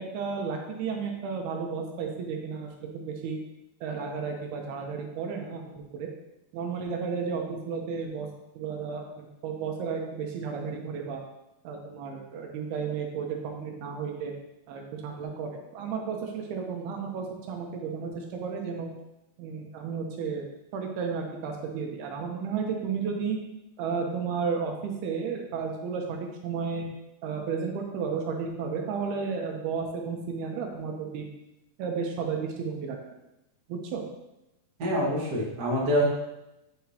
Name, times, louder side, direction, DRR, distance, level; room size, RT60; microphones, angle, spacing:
voice 1, 0.0-3.4 3.8-6.1 6.5-8.3 8.6-11.2 11.6-14.3 14.7-18.9 19.4-20.4 20.7-23.4 23.8-26.2 26.4-26.9 27.2-31.3 31.8-33.0 33.7-34.0, right 5 dB, 75° right, 2 dB, 2.6 m, -33 dB
voice 2, 34.8-36.0, equal, 60° right, -5 dB, 1.0 m, -26 dB
8.3 x 5.8 x 2.8 m, 0.92 s
omnidirectional pair, 4.8 m